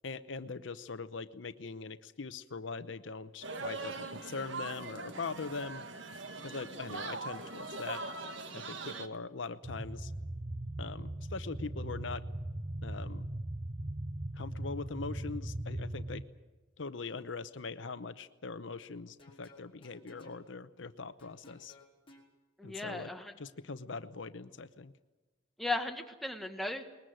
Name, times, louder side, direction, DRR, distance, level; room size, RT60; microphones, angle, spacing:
voice 1, 0.0-5.9 6.4-8.0 8.5-10.1 10.8-12.2 12.8-13.3 14.3-16.2 16.8-21.7 22.6-23.1 23.4-24.9, left 4 dB, 70° left, 12 dB, 0.8 m, -42 dB
sound 1, 3.4-9.1, right 3 dB, 70° right, 1.7 m, -41 dB
sound 2, 9.6-16.2, right 1 dB, 25° right, 0.7 m, -39 dB
sound 3, 19.0-20.4 21.2-22.3, left 2 dB, 30° left, 4.1 m, -58 dB
voice 2, 22.6-23.3 25.6-26.9, left 2 dB, ahead, 4 dB, 1.7 m, -36 dB
21.0 x 20.5 x 7.7 m, 1.2 s
head